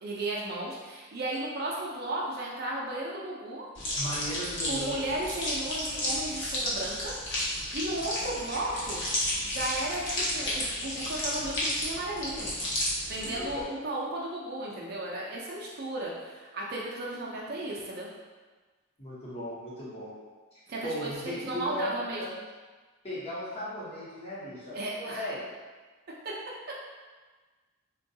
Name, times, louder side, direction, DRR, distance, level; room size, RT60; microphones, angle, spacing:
voice 1, 0.0-3.7 4.6-7.1 7.7-9.0 9.4-12.5 13.1-18.1 20.7-22.2 24.7-25.2 26.2-26.3, right 1 dB, 45° right, -4 dB, 0.5 m, -34 dB
sound 1, 3.7-13.6, left 1 dB, 55° left, 0.8 m, -32 dB
voice 2, 3.9-5.0 13.2-13.7 17.2-17.3 19.0-20.1 20.8-22.3 23.0-25.4, equal, 30° left, -9 dB, 0.9 m, -37 dB
3.7 x 2.2 x 2.7 m, 1.3 s
head